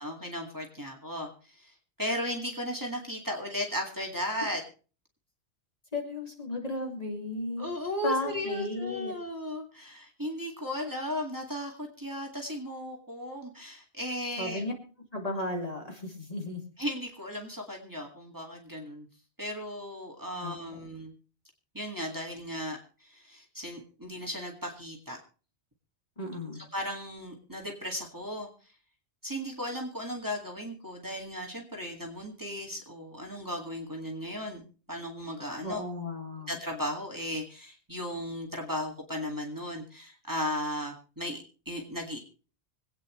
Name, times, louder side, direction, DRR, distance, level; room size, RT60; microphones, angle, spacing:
voice 1, 0.0-4.6 7.6-14.6 16.8-19.1 19.4-21.1 21.7-25.2 26.7-28.5 29.2-34.6 34.9-35.8 36.5-42.2, equal, 15° right, 0 dB, 2.2 m, -36 dB
voice 2, 5.9-7.7 8.0-9.1 14.4-14.8 15.1-16.6 20.3-20.6 26.2-26.7 35.6-36.5, left 2 dB, 35° left, 1 dB, 2.7 m, -34 dB
25.0 x 9.1 x 3.1 m, 0.36 s
omnidirectional pair, 1.1 m